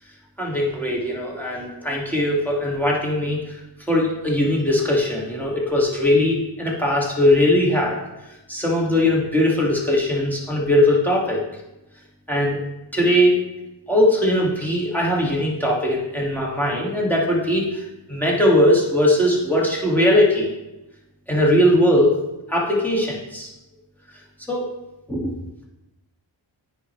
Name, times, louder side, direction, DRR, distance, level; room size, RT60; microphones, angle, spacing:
voice 1, 0.4-3.5 3.9-8.0 8.5-11.4 12.3-12.6 12.9-13.4 13.9-17.8 18.1-20.5 21.3-22.1 22.5-23.5 24.5-24.7 25.1-25.3, left 1 dB, 5° left, -4 dB, 2.2 m, -20 dB
9.5 x 4.6 x 3.3 m, 0.96 s
cardioid pair, 45°, 46 cm